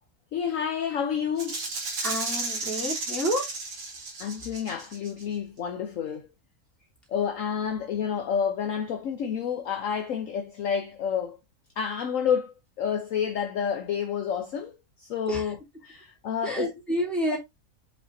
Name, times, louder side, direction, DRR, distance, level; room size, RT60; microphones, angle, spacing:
voice 1, 0.3-1.6 4.2-6.3 7.1-11.4 11.8-16.7, left 7 dB, 60° left, 1.0 m, -29 dB
Rattle (instrument), 1.4-5.2, right 3 dB, 85° right, 2.5 m, -33 dB
voice 2, 2.0-3.5 15.3-15.4 16.4-17.4, equal, ahead, 3.0 m, -29 dB
8.1 x 5.3 x 2.6 m
omnidirectional pair, 1.7 m